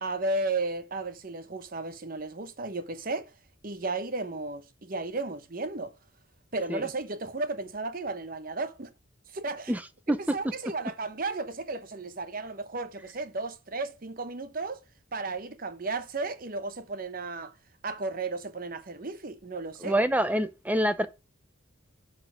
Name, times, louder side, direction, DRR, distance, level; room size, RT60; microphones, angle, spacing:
voice 1, 0.0-3.3 3.6-5.9 6.5-8.9 9.3-9.8 10.1-14.8 15.1-17.5 17.8-20.0, right 3 dB, 45° right, 0.9 m, -34 dB
voice 2, 19.8-21.1, right 1 dB, 10° right, 0.6 m, -26 dB
10.5 x 4.3 x 4.9 m
head